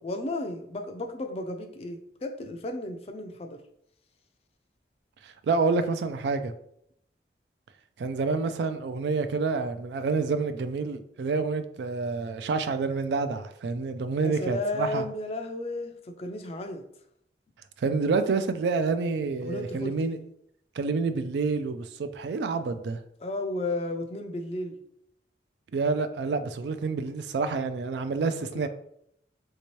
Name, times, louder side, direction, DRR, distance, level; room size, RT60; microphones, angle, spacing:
voice 1, 0.0-3.6 14.2-16.8 19.4-20.2 23.2-24.8 28.4-28.7, left 2 dB, 35° left, 0.4 m, -33 dB
voice 2, 5.2-6.5 8.0-15.1 17.8-20.2 20.8-23.0 25.7-28.7, right 4 dB, 75° right, 0.3 m, -28 dB
3.3 x 2.8 x 3.0 m
head